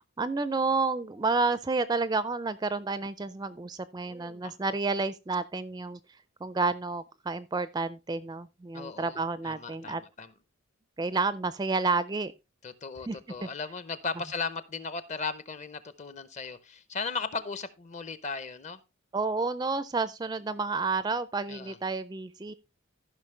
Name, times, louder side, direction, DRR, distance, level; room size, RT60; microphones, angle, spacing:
voice 1, 0.0-6.0 6.4-10.0 11.0-12.3 13.1-13.2 19.1-22.5, right 3 dB, 20° right, 0.4 m, -30 dB
voice 2, 8.7-9.2 9.5-10.3 12.6-18.8 21.5-21.8, left 4 dB, 35° left, 0.6 m, -36 dB
14.5 x 5.7 x 3.2 m
head